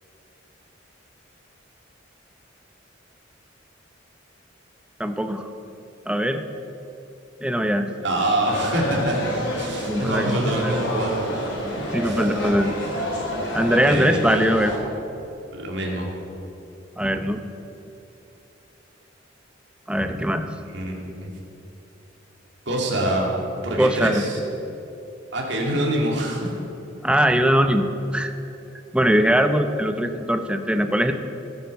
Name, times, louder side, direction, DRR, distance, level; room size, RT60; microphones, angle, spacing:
voice 1, 5.0-5.5 6.1-6.4 7.4-7.9 9.9-10.8 11.9-12.7 13.5-14.7 17.0-17.4 19.9-20.4 23.8-24.2 27.0-27.8 28.1-28.3 28.9-31.1, equal, 5° right, 7 dB, 0.7 m, -21 dB
voice 2, 8.0-9.2 9.5-11.3 12.0-12.4 13.7-14.5 15.5-16.1 20.7-21.3 22.7-23.3 23.6-24.4 25.3-26.5, right 1 dB, 65° right, -1 dB, 2.7 m, -25 dB
sound 1, 8.4-14.8, equal, 90° left, 4.0 m, -29 dB
15.5 x 8.9 x 6.8 m, 3.0 s
head